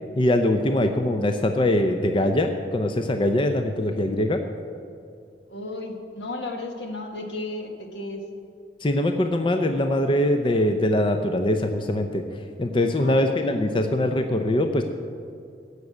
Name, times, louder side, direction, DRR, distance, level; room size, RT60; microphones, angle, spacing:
voice 1, 0.2-4.4 8.8-12.2 12.6-14.8, left 1 dB, 30° left, 6 dB, 0.6 m, -22 dB
voice 2, 5.5-8.2 12.9-13.6, left 2 dB, 80° left, 4 dB, 1.5 m, -34 dB
13.0 x 6.6 x 8.4 m, 2.4 s
head